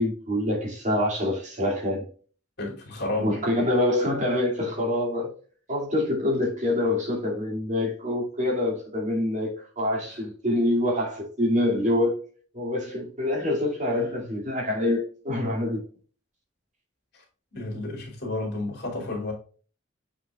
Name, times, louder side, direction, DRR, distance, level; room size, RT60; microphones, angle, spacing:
voice 1, 0.0-2.1 3.2-5.3 5.7-12.2 12.5-15.8, left 1 dB, 40° right, 2.6 m, -26 dB
voice 2, 2.6-3.4 17.5-19.3, left 2 dB, 60° left, 3.0 m, -31 dB
7.3 x 5.9 x 2.4 m
head